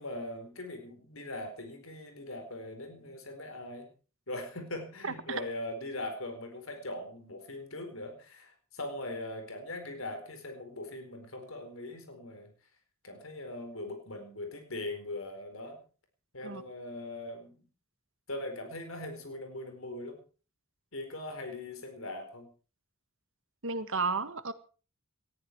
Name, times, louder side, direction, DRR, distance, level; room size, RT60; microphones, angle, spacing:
voice 1, 0.0-3.9 4.3-12.5 13.0-15.8 16.3-17.6 18.3-20.2 20.9-22.5, left 1 dB, 75° left, 6 dB, 4.5 m, -40 dB
voice 2, 5.0-5.4 16.4-16.6 23.6-24.5, right 4 dB, 65° right, 12 dB, 1.6 m, -33 dB
19.5 x 14.0 x 4.7 m, 0.38 s
head